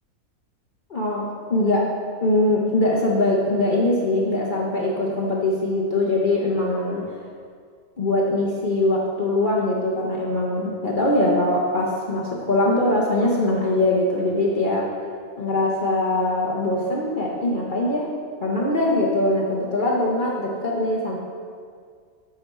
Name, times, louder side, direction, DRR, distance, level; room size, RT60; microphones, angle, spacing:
voice 1, 0.9-1.9 2.2-7.2 8.0-14.9 15.4-18.1 18.4-21.2, left 1 dB, 45° left, -4 dB, 0.7 m, -22 dB
8.5 x 5.0 x 4.2 m, 2.1 s
omnidirectional pair, 1.6 m